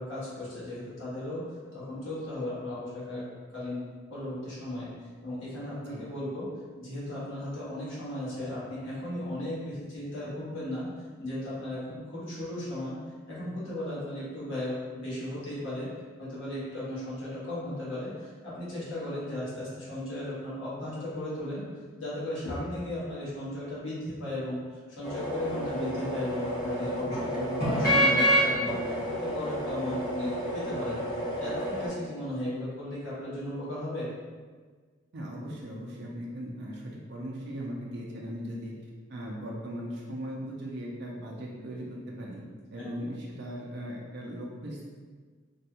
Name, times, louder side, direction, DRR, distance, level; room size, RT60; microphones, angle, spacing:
voice 1, 0.0-1.4 1.7-3.3 3.5-3.8 4.1-4.9 5.2-6.5 6.8-10.9 11.2-13.0 13.3-15.9 16.2-21.6 22.0-24.6 25.0-31.0 31.3-34.1 42.8-42.9, left 1 dB, 80° left, -9 dB, 1.2 m, -36 dB
sound 1, 25.0-31.9, equal, 50° left, 1.3 m, -28 dB
voice 2, 35.1-38.7 39.1-42.4 42.7-44.9, equal, 60° right, -3 dB, 0.4 m, -38 dB
3.2 x 2.3 x 2.8 m, 1.5 s
head